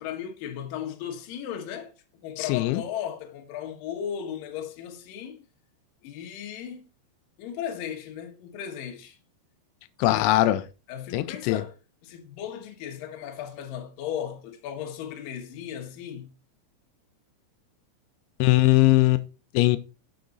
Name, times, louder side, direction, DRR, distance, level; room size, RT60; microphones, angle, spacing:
voice 1, 0.0-1.9 2.2-5.4 6.0-6.8 7.4-9.2 10.1-10.3 10.9-11.8 12.0-16.3, left 9 dB, 70° left, 2.3 m, -36 dB
voice 2, 2.4-2.8 10.0-10.6 11.1-11.6 18.4-19.2 19.5-19.8, left 17 dB, 85° left, 2.9 m, -20 dB
7.1 x 6.5 x 3.9 m
omnidirectional pair, 5.3 m